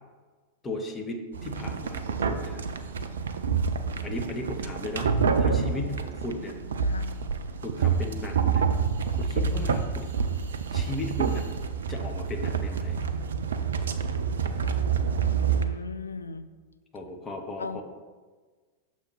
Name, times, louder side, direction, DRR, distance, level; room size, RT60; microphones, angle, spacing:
voice 1, 0.6-2.7 4.0-6.5 7.6-8.6 9.1-10.1 10.7-11.5 11.9-13.0 16.9-17.8, left 2 dB, 20° left, 3 dB, 0.9 m, -36 dB
sound 1, 1.3-15.6, right 6 dB, 65° right, 0.4 m, -28 dB
voice 2, 6.8-7.1 15.2-16.5 17.6-17.8, left 3 dB, 75° left, 11 dB, 0.3 m, -37 dB
6.7 x 3.1 x 5.6 m, 1.4 s
figure-of-eight pair, 90°, 0 cm